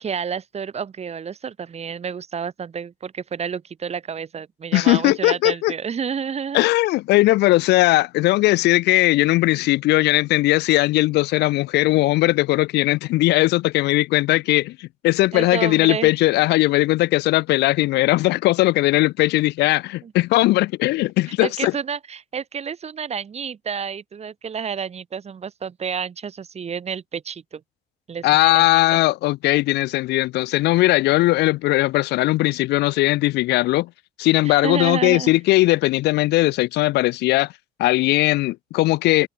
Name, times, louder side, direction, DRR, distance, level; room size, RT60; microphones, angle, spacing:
voice 1, 0.0-6.6 15.3-16.1 20.0-20.1 21.4-27.6 28.1-29.0 34.4-35.3, right 7 dB, 40° right, 7.2 m, -30 dB
voice 2, 4.7-5.7 6.5-21.7 28.2-33.9 34.2-37.5 37.8-39.3, left 18 dB, 85° left, 1.4 m, -19 dB
cardioid pair, 110°, 17 cm